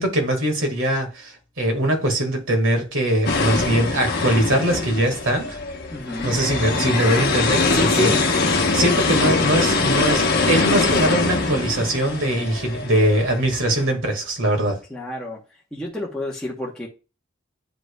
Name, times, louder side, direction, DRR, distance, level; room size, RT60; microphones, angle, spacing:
voice 1, 0.0-5.6 6.2-8.1 8.7-14.8, right 1 dB, 70° right, 1.9 m, -21 dB
sound 1, 3.3-13.8, left 3 dB, 55° left, 1.0 m, -22 dB
voice 2, 5.9-6.4 7.7-8.2 14.9-15.4 15.7-16.9, left 1 dB, 5° left, 1.0 m, -28 dB
9.1 x 5.0 x 2.3 m
head